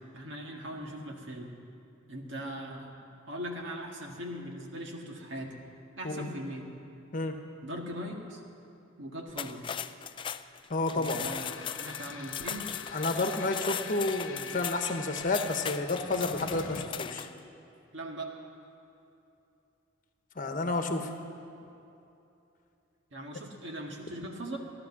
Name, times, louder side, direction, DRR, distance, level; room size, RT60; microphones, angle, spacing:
voice 1, 0.1-1.5 2.1-2.9 3.3-5.6 6.0-6.7 7.6-8.4 9.0-9.7 10.9-12.7 17.9-18.3 23.1-24.6, equal, 60° right, 0 dB, 1.8 m, -40 dB
sound 1, 9.3-17.4, left 8 dB, 25° left, 0.3 m, -38 dB
voice 2, 10.7-11.3 12.9-17.3 20.4-21.1, left 2 dB, 40° left, 5 dB, 1.2 m, -30 dB
sound 2, 11.1-16.9, left 5 dB, 80° left, 1.0 m, -44 dB
16.5 x 11.5 x 7.2 m, 2.8 s
head